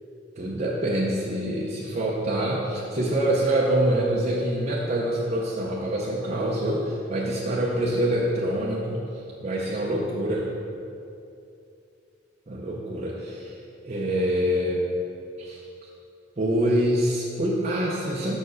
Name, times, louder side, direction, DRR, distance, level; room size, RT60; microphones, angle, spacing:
voice 1, 0.4-9.0 9.4-10.5 12.5-13.6 13.8-14.8 15.4-15.9 16.4-18.4, right 1 dB, 35° right, -5 dB, 0.7 m, -25 dB
5.9 x 4.6 x 6.3 m, 2.6 s
head